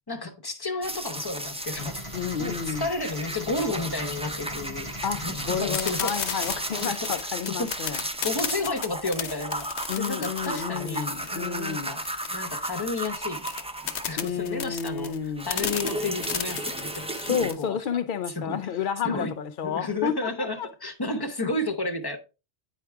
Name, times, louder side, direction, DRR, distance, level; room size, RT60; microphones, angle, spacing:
voice 1, 0.1-2.0 2.4-6.1 6.7-7.1 7.4-7.7 8.2-9.7 10.0-12.0 12.3-13.5 14.1-17.1 17.6-18.0 18.3-18.6 19.0-19.3 19.6-22.2, left 2 dB, 25° left, 0.9 m, -32 dB
sound 1, 0.8-14.6 14.9-17.5, right 1 dB, 10° right, 0.4 m, -34 dB
sound 2, 1.7-6.8, equal, 25° right, 2.6 m, -39 dB
voice 2, 2.1-2.9 5.0-8.0 9.9-11.9 14.2-15.5 17.2-20.7, left 7 dB, 55° left, 0.6 m, -30 dB
sound 3, 5.7-17.6, left 8 dB, 75° left, 1.0 m, -33 dB
9.2 x 4.8 x 3.4 m
omnidirectional pair, 1.1 m